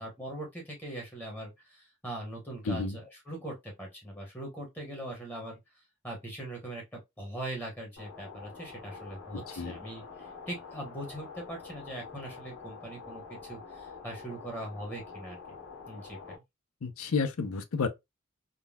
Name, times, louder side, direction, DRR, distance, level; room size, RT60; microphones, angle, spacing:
voice 1, 0.0-15.4 15.9-16.2, right 1 dB, 10° left, 0.9 m, -41 dB
voice 2, 2.7-3.0 9.3-9.8 16.8-17.9, left 4 dB, 85° left, 0.6 m, -31 dB
sound 1, 8.0-16.4, left 5 dB, 60° left, 1.4 m, -46 dB
3.7 x 2.2 x 2.2 m
head